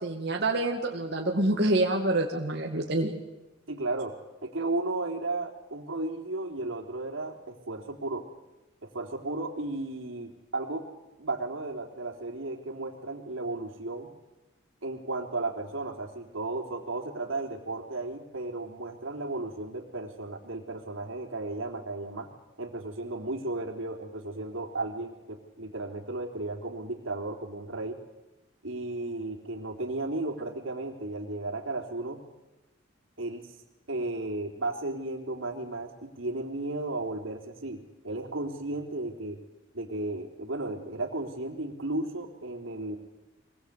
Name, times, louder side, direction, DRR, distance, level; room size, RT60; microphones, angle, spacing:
voice 1, 0.0-3.1, right 2 dB, 55° right, 0 dB, 2.3 m, -27 dB
voice 2, 3.7-4.2 4.4-8.3 8.8-10.9 11.2-14.1 14.8-22.3 22.6-28.0 28.6-32.2 33.2-33.4 33.9-39.4 39.7-43.0, right 2 dB, 85° right, 3 dB, 3.6 m, -34 dB
24.0 x 20.0 x 8.3 m, 1.0 s
head